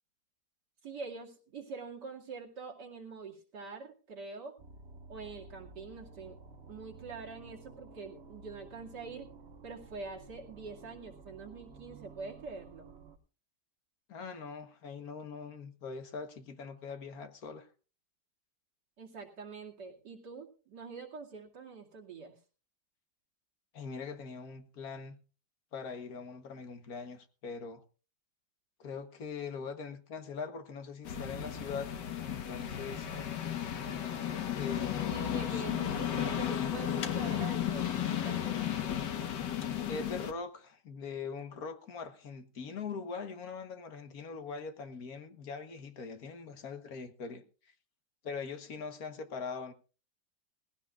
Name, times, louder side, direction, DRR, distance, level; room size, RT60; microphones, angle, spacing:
voice 1, 0.8-4.6 5.1-6.4 6.7-9.3 9.6-12.9 19.0-22.4 35.1-38.6, right 4 dB, 70° right, 3.0 m, -45 dB
sound 1, 4.6-13.2, right 3 dB, 40° right, 1.3 m, -53 dB
voice 2, 14.1-17.7 23.7-25.2 25.7-27.8 28.8-31.9 32.2-33.1 34.6-35.6 39.9-47.7 48.2-49.7, left 5 dB, 60° left, 1.7 m, -42 dB
sound 2, 31.0-40.3, left 10 dB, 80° left, 1.8 m, -34 dB
19.5 x 16.0 x 2.4 m
omnidirectional pair, 1.9 m